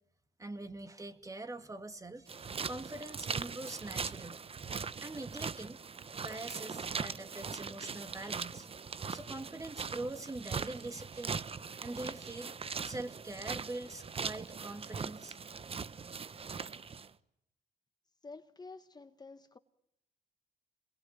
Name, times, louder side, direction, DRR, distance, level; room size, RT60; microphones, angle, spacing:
voice 1, 0.4-4.5 5.0-5.8 6.2-12.6 12.8-15.4, right 2 dB, 20° right, 9 dB, 2.2 m, -44 dB
sound 1, 2.3-17.1, right 5 dB, 40° right, 1.0 m, -40 dB
voice 2, 18.2-19.6, left 3 dB, 25° left, 10 dB, 1.3 m, -50 dB
26.5 x 21.5 x 9.2 m, 0.78 s
supercardioid pair, 70°, 16 cm